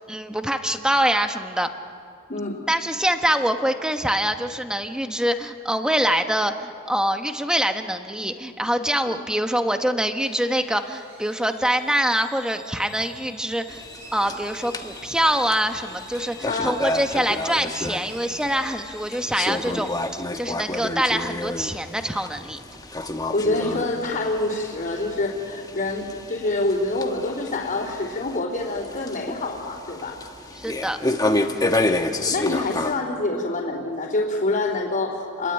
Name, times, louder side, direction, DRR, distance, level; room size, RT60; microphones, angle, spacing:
voice 1, 0.1-1.7 2.7-13.8 14.1-22.6 30.5-31.0, equal, 5° right, 7 dB, 1.2 m, -24 dB
sound 1, 10.2-22.4, right 2 dB, 25° right, 6.9 m, -47 dB
sound 2, 13.7-32.9, left 2 dB, 15° left, 1.2 m, -30 dB
voice 2, 16.5-16.8 23.3-30.2 31.5-35.5, left 2 dB, 35° left, -8 dB, 3.4 m, -26 dB
29.5 x 21.5 x 8.9 m, 2.5 s
head